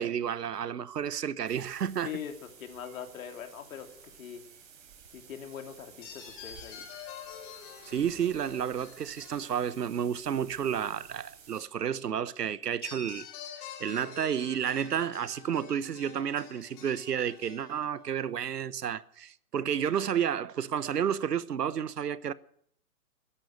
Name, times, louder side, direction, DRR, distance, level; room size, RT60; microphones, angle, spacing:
voice 1, 0.0-2.1 7.9-13.3 13.8-22.3, right 8 dB, 85° right, 1.0 m, -31 dB
sound 1, 1.5-11.6, right 6 dB, 55° right, 4.5 m, -54 dB
voice 2, 2.0-2.3 2.6-4.4 5.1-6.8, left 8 dB, 60° left, 2.9 m, -42 dB
sound 2, 3.7-4.1 6.0-10.4 12.8-18.1, left 8 dB, 30° left, 3.4 m, -48 dB
13.5 x 11.5 x 9.4 m
hypercardioid pair, 140°, 46 cm